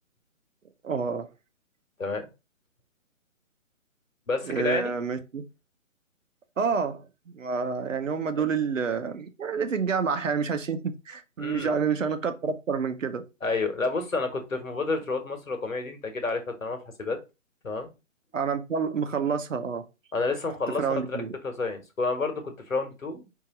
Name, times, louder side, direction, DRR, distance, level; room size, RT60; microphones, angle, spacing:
voice 1, 0.8-1.3 4.4-5.4 6.6-13.2 18.3-19.8 20.8-21.3, right 5 dB, 70° right, 1.0 m, -28 dB
voice 2, 4.3-4.9 11.4-11.7 13.4-17.2 17.6-17.9 20.1-23.3, left 3 dB, 80° left, 1.4 m, -30 dB
4.8 x 2.8 x 3.9 m
figure-of-eight pair, 140°, 39 cm